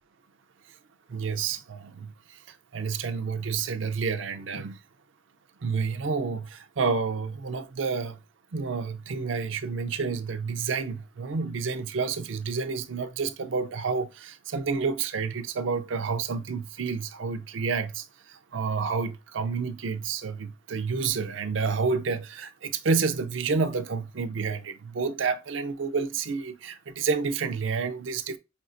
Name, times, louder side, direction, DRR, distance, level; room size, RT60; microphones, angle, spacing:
voice 1, 1.1-4.8 5.6-8.2 8.5-28.4, right 5 dB, 80° right, 0.5 m, -29 dB
5.4 x 2.8 x 2.5 m
head